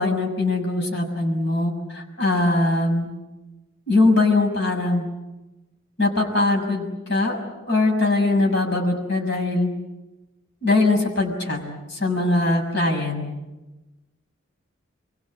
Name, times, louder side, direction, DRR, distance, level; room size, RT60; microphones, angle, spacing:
voice 1, 0.0-3.1 3.9-5.1 6.0-7.4 7.7-9.7 10.6-11.6 11.9-13.2, left 2 dB, 55° left, 1 dB, 6.3 m, -21 dB
28.5 x 23.5 x 8.7 m, 1.1 s
head